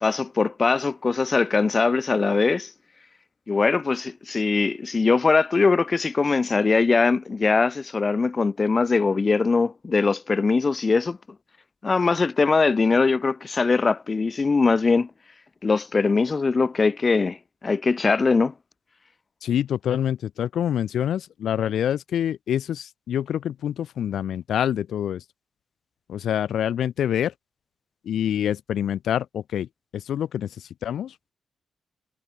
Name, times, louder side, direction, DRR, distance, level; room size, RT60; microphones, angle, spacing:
voice 1, 0.0-2.7 3.5-11.2 11.8-15.1 15.6-17.4 17.6-18.5, left 4 dB, 25° left, 2.1 m, -21 dB
voice 2, 19.4-25.2 26.1-27.3 28.1-29.7 29.9-30.5 30.8-31.1, left 10 dB, 80° left, 3.6 m, -26 dB
wide cardioid pair, 170°, 0 cm